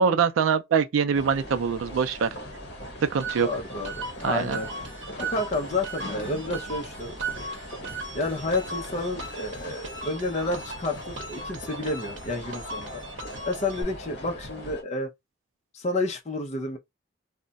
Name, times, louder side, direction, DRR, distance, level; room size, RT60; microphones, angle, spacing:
voice 1, 0.0-2.3 3.1-3.5 4.2-4.6, right 6 dB, 85° right, 0.4 m, -23 dB
sound 1, 1.1-14.8, equal, 55° left, 0.9 m, -40 dB
sound 2, 3.2-13.8, right 3 dB, 70° right, 0.8 m, -38 dB
voice 2, 3.4-4.7 5.2-7.2 8.1-12.9 13.4-15.1 15.7-16.8, left 2 dB, 35° left, 0.5 m, -30 dB
2.3 x 2.1 x 3.9 m
head